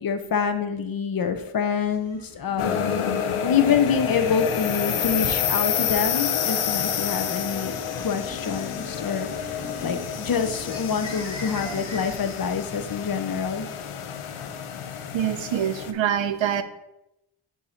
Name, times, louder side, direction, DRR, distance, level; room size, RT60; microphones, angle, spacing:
voice 1, 0.0-2.8 3.4-13.7, left 6 dB, 45° left, 7 dB, 0.6 m, -26 dB
sound 1, 1.6-12.2, equal, 10° right, 2.3 m, -43 dB
sound 2, 2.6-15.9, left 8 dB, 85° left, 0.6 m, -29 dB
voice 2, 15.1-16.6, right 9 dB, 65° right, 10 dB, 0.6 m, -25 dB
7.0 x 2.8 x 5.0 m, 0.88 s
wide cardioid pair, 110°, 49 cm